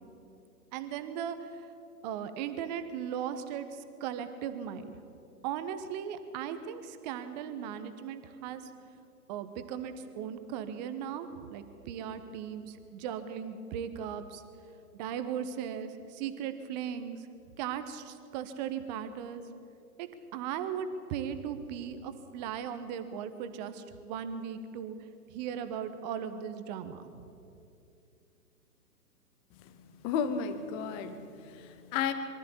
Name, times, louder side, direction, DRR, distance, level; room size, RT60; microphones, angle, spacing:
voice 1, 0.7-1.6 2.0-5.0 5.4-8.6 9.3-14.4 14.9-17.3 17.6-19.4 20.0-25.0 25.3-27.2, right 8 dB, 25° right, 10 dB, 1.2 m, -37 dB
voice 2, 29.6-32.1, left 7 dB, 10° left, 10 dB, 0.6 m, -34 dB
23.0 x 13.5 x 8.5 m, 2.6 s
figure-of-eight pair, 125°, 47 cm